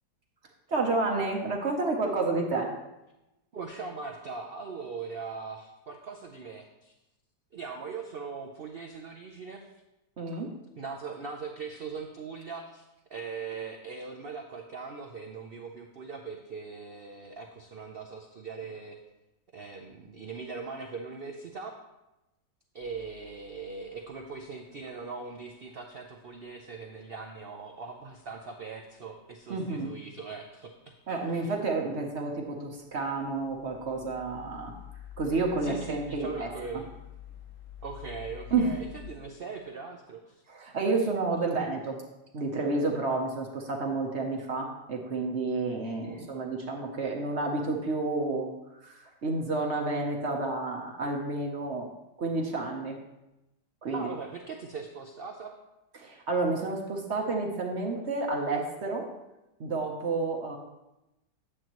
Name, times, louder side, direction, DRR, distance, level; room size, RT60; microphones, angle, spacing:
voice 1, 0.7-2.7 10.2-10.5 29.5-29.9 31.1-34.7 35.2-36.5 38.5-38.7 40.5-42.0 42.3-48.5 48.8-51.9 52.2-53.0 53.8-54.1 56.0-59.1 59.6-60.6, right 3 dB, 50° right, 0 dB, 1.0 m, -30 dB
voice 2, 3.5-6.9 7.5-9.7 10.8-12.8 13.1-19.0 19.5-21.8 22.7-30.7 31.2-31.5 35.6-37.0 37.8-40.4 45.8-46.3 53.9-55.5, right 5 dB, 75° right, 2 dB, 0.5 m, -40 dB
sound 1, 22.8-24.4 32.9-39.1, left 11 dB, 50° left, 1.6 m, -48 dB
9.7 x 7.5 x 3.0 m, 0.96 s
omnidirectional pair, 1.8 m